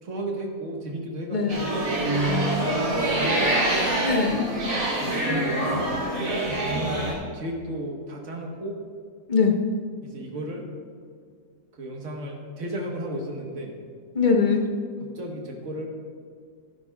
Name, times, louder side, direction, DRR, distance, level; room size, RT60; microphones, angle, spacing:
voice 1, 0.0-1.6 2.7-3.6 5.0-5.8 6.7-8.8 10.0-10.7 11.7-13.7 15.0-15.9, right 1 dB, 60° right, 1 dB, 1.6 m, -34 dB
sound 1, 1.5-7.1, right 1 dB, 85° right, 2.8 m, -25 dB
voice 2, 2.2-2.7 4.0-4.5 9.3-9.5 14.1-14.6, left 5 dB, 35° left, 1 dB, 1.1 m, -22 dB
12.5 x 11.0 x 2.3 m, 2.1 s
omnidirectional pair, 1.5 m